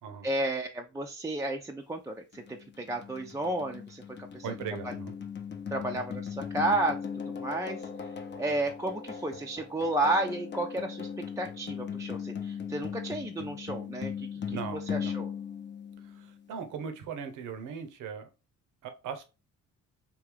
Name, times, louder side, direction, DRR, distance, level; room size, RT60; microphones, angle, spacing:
voice 1, 0.2-4.0 4.3-4.5 5.7-7.0 7.4-8.1 8.4-15.3, right 2 dB, 10° right, 0.4 m, -32 dB
sound 1, 2.3-16.5, left 7 dB, 35° left, 0.6 m, -39 dB
voice 2, 4.4-5.1 14.5-15.2 16.0-18.3 18.8-19.3, right 6 dB, 85° right, 0.8 m, -39 dB
3.6 x 2.7 x 3.2 m
cardioid pair, 90°, 30 cm